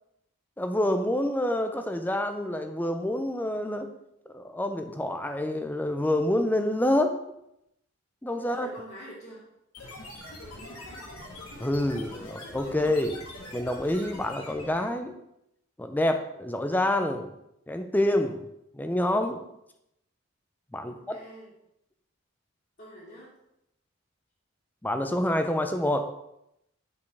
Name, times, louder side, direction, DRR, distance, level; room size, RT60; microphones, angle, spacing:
voice 1, 0.6-3.9 4.3-7.2 8.2-8.7 11.6-13.2 13.5-15.2 15.8-17.3 17.7-18.4 18.7-19.4 20.7-21.2 24.8-26.1, left 1 dB, 10° left, 7 dB, 0.5 m, -27 dB
voice 2, 8.4-9.4 10.4-11.2 20.9-21.5 22.8-23.3, equal, 45° left, -10 dB, 2.3 m, -46 dB
sound 1, 9.7-14.9, left 1 dB, 90° left, 1.7 m, -43 dB
9.4 x 5.1 x 3.4 m, 0.82 s
head